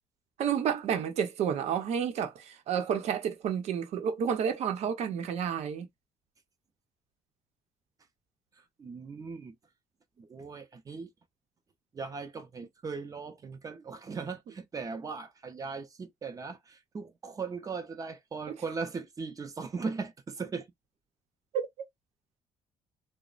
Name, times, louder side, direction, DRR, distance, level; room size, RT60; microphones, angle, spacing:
voice 1, 0.4-5.9, right 8 dB, 65° right, 0.8 m, -30 dB
voice 2, 8.8-9.5 10.2-11.1 11.9-20.7, right 4 dB, 30° right, 0.6 m, -38 dB
3.0 x 2.1 x 2.4 m
cardioid pair, 115°, 12 cm